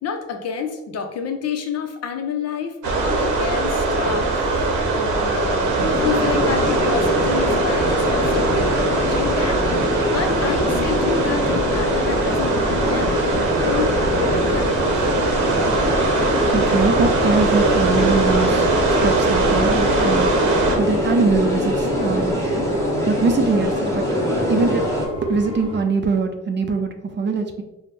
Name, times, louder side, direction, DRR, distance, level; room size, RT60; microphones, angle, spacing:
voice 1, 0.0-5.7 6.0-13.2 13.6-14.9, left 6 dB, 55° left, 5 dB, 0.6 m, -29 dB
sound 1, 2.8-20.8, right 3 dB, 80° right, 0.8 m, -21 dB
sound 2, 5.9-25.1, left 1 dB, 10° left, 1.0 m, -23 dB
sound 3, 13.5-25.8, right 2 dB, 15° right, 0.8 m, -33 dB
voice 2, 16.5-20.3 20.8-22.4 23.1-24.1 24.5-24.9 25.2-27.6, right 4 dB, 35° right, 6 dB, 0.5 m, -22 dB
4.1 x 2.1 x 3.3 m, 1.0 s
cardioid pair, 90°, 30 cm